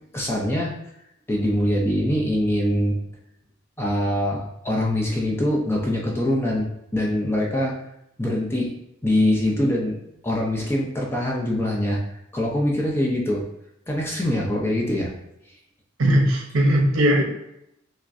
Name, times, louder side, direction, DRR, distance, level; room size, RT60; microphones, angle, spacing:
voice 1, 0.1-0.7 1.3-3.0 3.8-6.7 6.9-7.7 8.2-8.7 9.0-10.0 10.2-12.0 12.3-13.5 13.9-15.1, left 1 dB, 10° left, -3 dB, 0.5 m, -23 dB
voice 2, 16.0-17.2, equal, 85° right, 2 dB, 0.7 m, -18 dB
5.9 x 2.2 x 2.5 m, 0.80 s
head